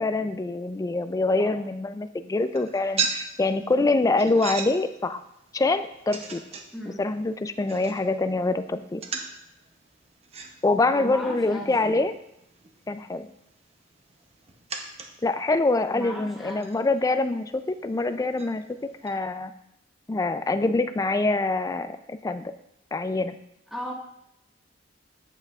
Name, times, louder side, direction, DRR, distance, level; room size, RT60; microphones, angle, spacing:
voice 1, 0.0-5.2 5.5-6.4 6.9-9.0 10.6-12.1 12.9-13.3 15.2-18.7 19.0-19.5 20.1-22.5 22.9-23.4, left 2 dB, 20° left, 10 dB, 0.3 m, -25 dB
sound 1, 2.4-19.1, right 5 dB, 35° right, 0.7 m, -39 dB
voice 2, 10.9-12.1 15.9-16.7 23.7-23.9, equal, ahead, -4 dB, 1.6 m, -36 dB
8.9 x 7.8 x 2.4 m, 0.81 s
head